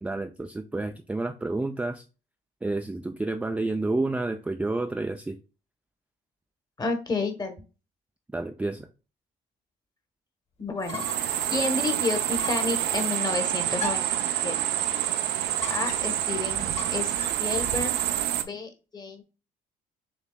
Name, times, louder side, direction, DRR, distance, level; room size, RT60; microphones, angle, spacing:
voice 1, 0.0-2.0 2.6-5.4 8.3-8.9, right 2 dB, 10° right, 5 dB, 0.3 m, -30 dB
voice 2, 6.8-7.6 10.6-11.0 11.5-14.6 15.7-17.1 17.4-18.0 18.4-19.2, left 3 dB, 25° left, 6 dB, 1.1 m, -31 dB
sound 1, 10.7-11.4 11.7-11.8 12.4-12.8 13.8-14.2 15.6-16.2 16.8-17.5, left 2 dB, 40° left, 1.4 m, -37 dB
sound 2, 10.8-18.4, right 11 dB, 75° right, 0.6 m, -27 dB
6.8 x 3.1 x 2.2 m, 0.33 s
cardioid pair, 110°, 17 cm